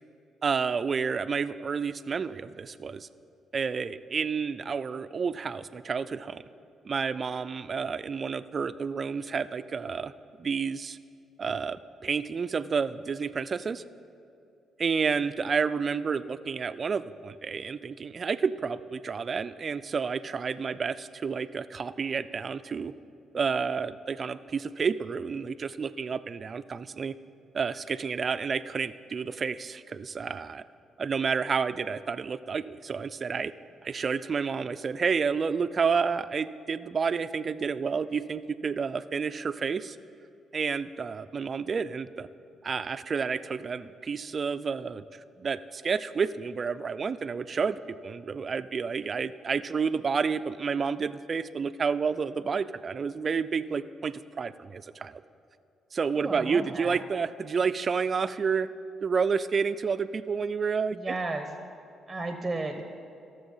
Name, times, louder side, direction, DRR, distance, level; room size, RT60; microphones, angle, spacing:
voice 1, 0.4-3.1 3.5-6.4 6.8-10.1 10.4-11.0 11.4-13.8 14.8-22.9 23.3-27.1 27.5-30.6 31.0-33.5 33.8-40.0 40.5-42.3 42.6-55.2 55.9-58.7 59.0-61.1, right 5 dB, 40° right, 13 dB, 0.4 m, -30 dB
voice 2, 56.1-57.0 60.9-61.5 62.1-62.8, right 2 dB, 15° right, 6 dB, 0.9 m, -33 dB
16.5 x 6.8 x 5.6 m, 2.7 s
cardioid pair, 90°, 0 cm